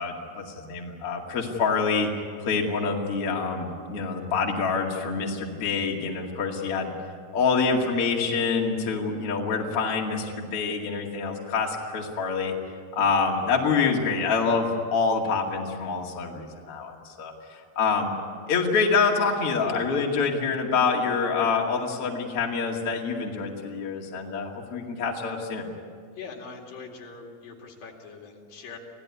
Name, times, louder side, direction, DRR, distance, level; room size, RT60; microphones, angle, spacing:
voice 1, 0.0-2.1 2.4-6.9 7.3-12.5 12.9-18.1 18.5-25.7, left 5 dB, 45° left, -1 dB, 2.9 m, -26 dB
voice 2, 26.2-28.8, left 5 dB, 70° left, 0 dB, 4.2 m, -42 dB
27.0 x 16.5 x 9.8 m, 2.2 s
omnidirectional pair, 4.2 m